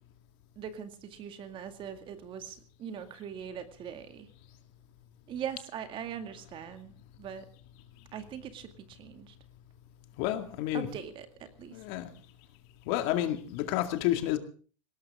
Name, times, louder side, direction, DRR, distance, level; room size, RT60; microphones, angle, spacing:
voice 1, 0.6-4.3 5.3-7.5 8.1-9.4 10.7-11.8, right 8 dB, 30° right, 2.2 m, -41 dB
voice 2, 10.2-10.9 11.7-12.1 12.9-14.4, left 13 dB, 55° left, 2.2 m, -30 dB
19.5 x 18.5 x 3.6 m
supercardioid pair, 135°, 16 cm